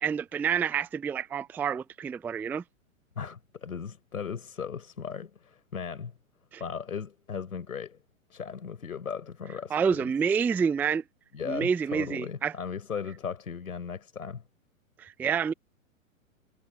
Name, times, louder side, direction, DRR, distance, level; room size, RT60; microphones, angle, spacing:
voice 1, 0.0-2.6 6.5-6.6 9.7-11.0 11.5-12.5 15.0-15.5, right 6 dB, 5° right, 0.4 m, -28 dB
voice 2, 3.2-6.1 6.6-8.0 8.3-10.1 11.3-14.4, left 6 dB, 80° left, 4.2 m, -37 dB
hypercardioid pair, 115°, 42 cm